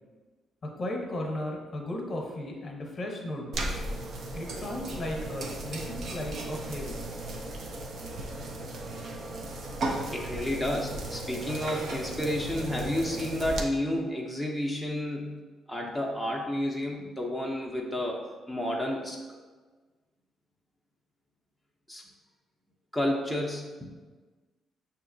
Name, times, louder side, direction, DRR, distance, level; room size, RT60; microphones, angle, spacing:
voice 1, 0.8-3.6 4.3-7.1, left 1 dB, 45° left, 1 dB, 0.8 m, -35 dB
sound 1, 3.5-13.6, right 1 dB, 65° right, 0.6 m, -36 dB
voice 2, 10.1-15.4 15.7-19.2 21.9-22.0 22.9-23.9, left 1 dB, ahead, -1 dB, 0.6 m, -31 dB
5.7 x 2.8 x 2.6 m, 1.3 s
cardioid pair, 90°, 0 cm